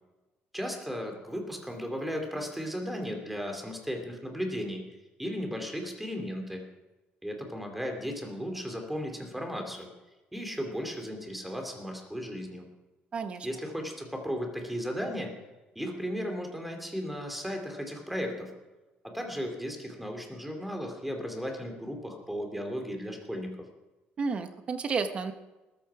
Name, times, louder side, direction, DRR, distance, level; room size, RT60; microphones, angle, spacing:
voice 1, 0.5-4.8 5.2-6.6 7.2-9.9 10.3-12.7 13.4-15.4 15.7-18.5 19.0-23.6, equal, 5° right, 3 dB, 2.8 m, -35 dB
voice 2, 13.1-13.5 24.2-25.3, right 5 dB, 30° right, 9 dB, 1.2 m, -31 dB
20.0 x 14.0 x 4.9 m, 1.1 s
cardioid pair, 165°, 4 cm